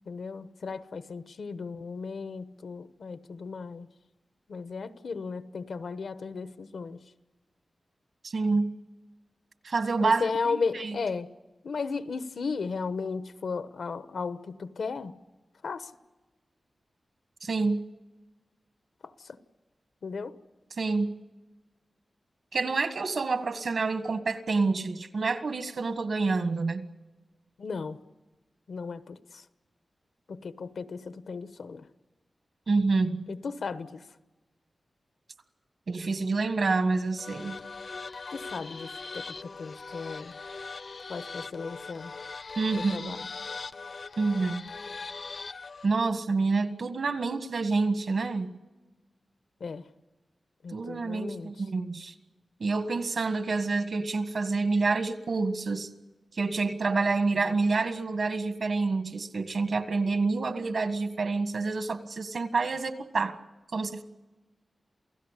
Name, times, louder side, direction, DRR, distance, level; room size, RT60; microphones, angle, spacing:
voice 1, 0.1-3.9 4.5-7.0 10.0-11.3 11.6-15.2 15.6-15.9 19.0-19.4 20.0-20.3 27.6-28.0 28.7-29.4 30.3-31.9 33.3-34.0 38.3-40.4 41.1-42.1 42.7-43.3 49.6-49.8 50.6-51.5, left 4 dB, 80° left, 12 dB, 1.1 m, -35 dB
voice 2, 8.2-8.7 9.6-11.0 17.4-17.8 20.8-21.1 22.5-26.9 32.7-33.2 35.9-37.6 42.6-43.1 44.2-44.6 45.8-48.6 50.7-52.1 52.6-55.9 56.3-63.4 63.7-64.0, right 3 dB, 65° right, 9 dB, 1.6 m, -28 dB
sound 1, 37.2-45.9, left 4 dB, 55° left, 0.7 m, -40 dB
28.5 x 17.0 x 8.3 m, 1.2 s
wide cardioid pair, 120°, 0 cm